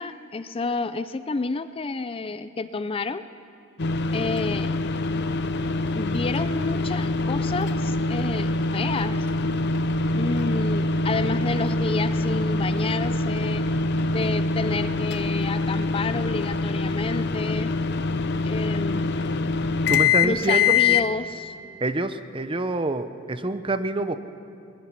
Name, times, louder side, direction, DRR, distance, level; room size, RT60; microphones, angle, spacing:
voice 1, 0.0-3.3 4.1-4.7 5.9-9.3 10.1-13.7 14.1-17.8 18.4-19.4 20.2-21.5, left 3 dB, 25° left, 12 dB, 0.4 m, -30 dB
sound 1, 3.8-21.1, left 3 dB, 60° left, 0.8 m, -24 dB
voice 2, 19.9-21.0 21.8-24.2, right 2 dB, 25° right, 10 dB, 0.8 m, -26 dB
21.5 x 20.5 x 6.0 m, 2.5 s
head